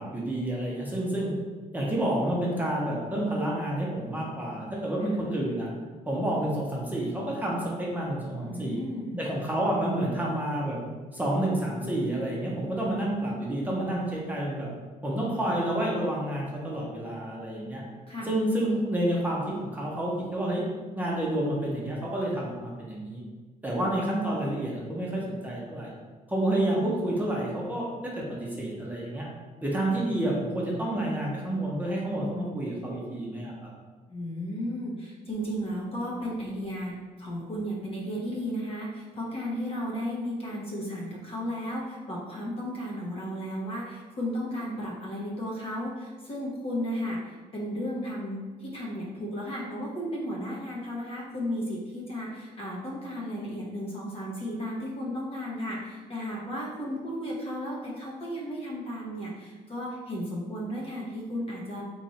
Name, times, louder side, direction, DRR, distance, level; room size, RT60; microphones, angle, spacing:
voice 1, 0.0-1.3 1.7-5.7 6.1-8.8 9.2-10.8 11.1-14.7 15.0-17.8 18.2-20.6 21.0-23.2 23.6-25.9 26.3-29.3 29.6-33.7, right 1 dB, 10° right, -4 dB, 0.8 m, -29 dB
voice 2, 8.4-9.3 18.1-18.3 34.1-61.8, equal, 40° left, -4 dB, 1.0 m, -34 dB
3.1 x 2.5 x 4.2 m, 1.4 s
cardioid pair, 95°, 15 cm